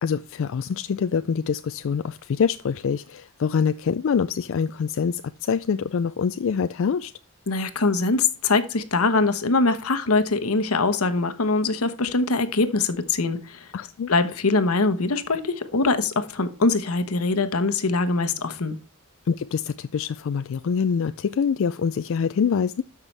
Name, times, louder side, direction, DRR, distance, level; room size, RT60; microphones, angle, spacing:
voice 1, 0.0-7.1 13.7-14.1 19.3-22.8, left 6 dB, 65° left, 0.4 m, -25 dB
voice 2, 7.5-13.7 14.1-18.8, left 3 dB, 90° left, 1.1 m, -23 dB
13.0 x 5.8 x 3.3 m
head